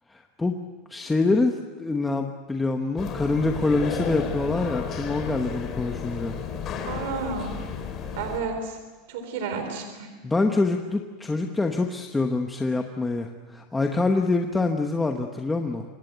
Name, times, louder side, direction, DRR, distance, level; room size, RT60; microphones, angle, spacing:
voice 1, 0.1-0.6 0.9-6.3 10.2-15.8, left 3 dB, 5° left, 3 dB, 1.1 m, -25 dB
sound 1, 3.0-8.4, left 7 dB, 25° left, 3.5 m, -33 dB
voice 2, 6.9-7.6 8.1-8.8 9.1-10.1, right 5 dB, 60° right, 7 dB, 3.8 m, -31 dB
27.0 x 25.0 x 8.1 m, 1.3 s
supercardioid pair, 175°, 0 cm